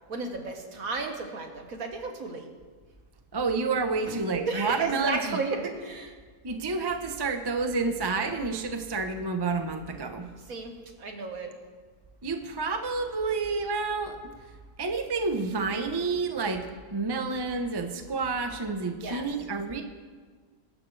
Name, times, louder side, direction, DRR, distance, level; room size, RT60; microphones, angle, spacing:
voice 1, 0.1-2.5 4.1-4.2 4.5-6.1 10.5-10.7 11.0-11.5 19.0-19.3, right 4 dB, 60° right, 3 dB, 1.9 m, -33 dB
voice 2, 3.3-5.4 6.4-10.3 12.2-14.2 14.8-19.8, right 4 dB, 20° right, 5 dB, 0.7 m, -29 dB
22.0 x 12.5 x 3.3 m, 1.5 s
omnidirectional pair, 1.7 m